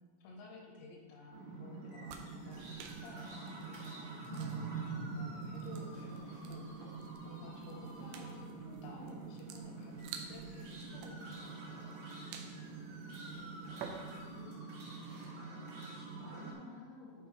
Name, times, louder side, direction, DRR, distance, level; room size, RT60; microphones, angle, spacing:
voice 1, 0.2-7.0 7.2-12.3, left 2 dB, 85° left, 1 dB, 3.5 m, -54 dB
sound 1, 1.3-16.5, right 4 dB, 65° right, 3.4 m, -45 dB
sound 2, 2.0-14.5, right 6 dB, 85° right, 3.0 m, -53 dB
voice 2, 14.1-14.8 15.5-17.3, left 3 dB, 50° right, -11 dB, 2.1 m, -53 dB
11.0 x 4.5 x 3.2 m, 1.5 s
omnidirectional pair, 6.0 m